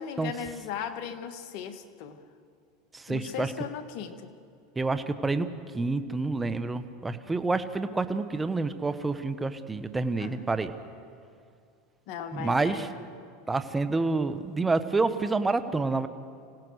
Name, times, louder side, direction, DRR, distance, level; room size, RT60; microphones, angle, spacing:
voice 1, 0.0-2.2 3.1-4.3 10.2-10.4 12.1-13.0, left 8 dB, 60° left, 9 dB, 1.6 m, -37 dB
voice 2, 2.9-3.5 4.8-5.5 5.7-10.7 12.3-12.9 13.5-16.1, right 3 dB, 15° right, 11 dB, 1.2 m, -28 dB
25.5 x 17.0 x 6.5 m, 2.3 s
supercardioid pair, 110°, 0 cm